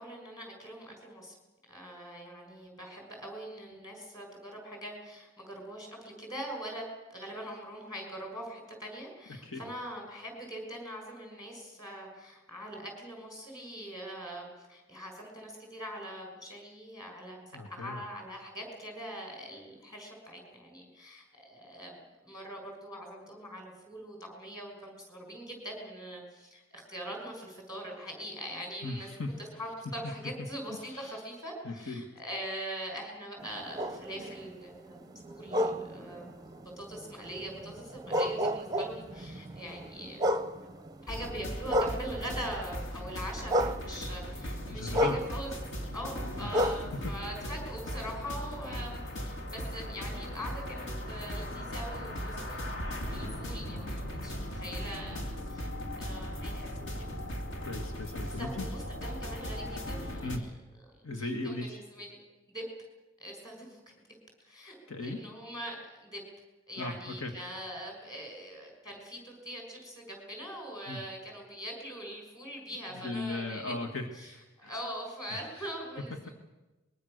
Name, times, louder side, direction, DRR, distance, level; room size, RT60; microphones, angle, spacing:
voice 1, 0.0-1.3 1.7-6.8 7.1-29.1 29.6-40.2 40.6-40.8 41.1-45.5 45.9-52.6 53.1-55.7 56.0-56.9 58.3-60.5 61.2-62.2 62.5-62.7 63.2-63.8 64.4-66.2 66.7-73.7 74.1-76.3, equal, 20° left, 2 dB, 6.2 m, -42 dB
voice 2, 9.3-9.7 17.5-18.0 28.8-29.4 30.8-31.2 31.6-32.1 44.7-45.2 46.4-47.2 57.6-58.7 60.2-60.5 61.0-61.8 64.9-65.2 66.8-67.4 70.9-71.0 72.9-74.1 74.6-74.7 75.5-75.7, left 2 dB, 75° left, 4 dB, 1.9 m, -37 dB
sound 1, 33.4-42.6 42.9-48.2 48.7-52.2, equal, 20° right, 0.7 m, -34 dB
sound 2, 41.1-60.4, equal, 55° left, 2.5 m, -38 dB
24.5 x 22.0 x 6.7 m, 1.1 s
head